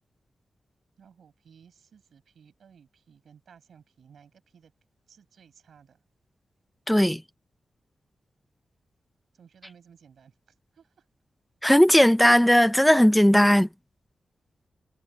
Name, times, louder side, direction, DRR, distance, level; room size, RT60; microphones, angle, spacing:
voice 1, 1.0-4.7 5.1-6.0 9.4-10.3 10.8-10.9, right 7 dB, 70° right, 6.5 m, -56 dB
voice 2, 6.9-7.2 11.6-13.7, equal, 5° left, 0.6 m, -17 dB
wide cardioid pair, 165°, 0 cm